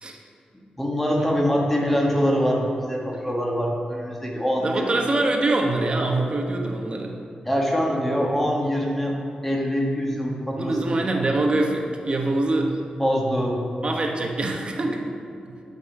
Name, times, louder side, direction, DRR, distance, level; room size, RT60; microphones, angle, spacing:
voice 1, 0.8-5.1 7.4-9.1 9.4-11.0 13.0-13.6, equal, 10° left, -2 dB, 1.5 m, -24 dB
voice 2, 4.6-7.1 10.6-12.8 13.8-15.2, right 2 dB, 40° right, 1 dB, 1.1 m, -24 dB
8.6 x 5.4 x 5.5 m, 2.5 s
wide cardioid pair, 105°, 3 cm